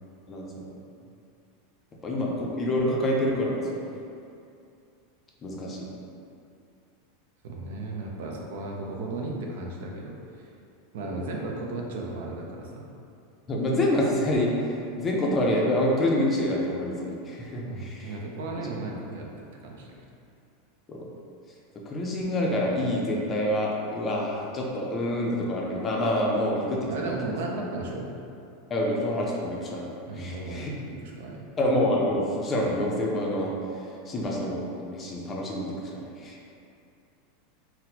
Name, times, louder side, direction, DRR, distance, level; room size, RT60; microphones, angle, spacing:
voice 1, 0.3-0.7 2.0-3.8 5.4-5.9 11.1-11.3 13.5-18.1 20.9-21.0 21.9-27.1 28.7-30.7 31.6-36.4, left 1 dB, 20° left, -3 dB, 0.4 m, -27 dB
voice 2, 7.4-10.5 10.9-12.8 17.6-19.9 26.9-28.1 30.1-31.4, right 2 dB, 75° right, -1 dB, 0.5 m, -35 dB
4.1 x 2.0 x 2.7 m, 2.6 s
supercardioid pair, 150°, 0 cm